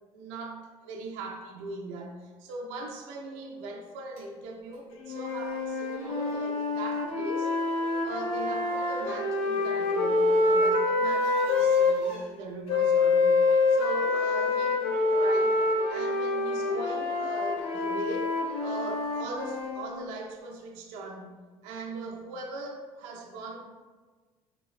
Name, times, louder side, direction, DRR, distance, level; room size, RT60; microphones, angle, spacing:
voice 1, 0.1-7.5 8.0-15.6 15.9-23.6, right 2 dB, 85° right, 1 dB, 0.4 m, -40 dB
sound 1, 4.2-4.3 4.7-4.8 5.5-5.6 5.8-6.4 7.3-8.0 8.6-10.6 10.9-12.2 13.2-18.9, left 1 dB, 75° left, 1.3 m, -45 dB
sound 2, 5.0-12.0 12.7-19.9, left 3 dB, 55° left, 0.4 m, -26 dB
3.4 x 2.1 x 2.3 m, 1.4 s
cardioid pair, 130°, 11 cm